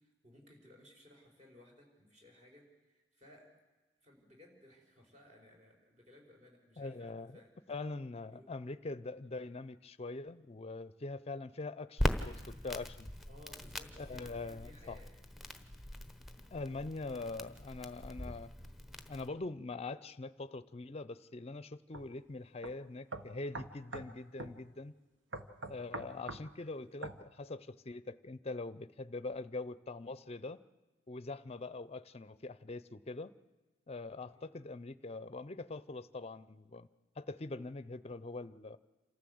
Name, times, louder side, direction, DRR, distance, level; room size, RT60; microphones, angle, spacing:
voice 1, 0.0-3.5 4.0-7.5 8.2-8.5 13.3-15.1 26.0-26.2 34.3-34.5, left 1 dB, 40° right, 1 dB, 4.7 m, -60 dB
voice 2, 6.8-7.4 7.7-13.1 14.0-15.0 16.5-18.5 19.1-24.9 25.7-30.6 31.1-33.3 33.9-36.9 37.2-38.8, left 3 dB, 35° left, 16 dB, 0.6 m, -43 dB
Crackle, 12.0-19.3, left 1 dB, ahead, 0.9 m, -40 dB
sound 1, 21.9-22.1 22.6-22.7 23.1-24.1 24.4-24.6 25.3-26.5 27.0-27.2, right 2 dB, 70° right, 1.3 m, -43 dB
27.0 x 14.0 x 7.9 m, 1.2 s
head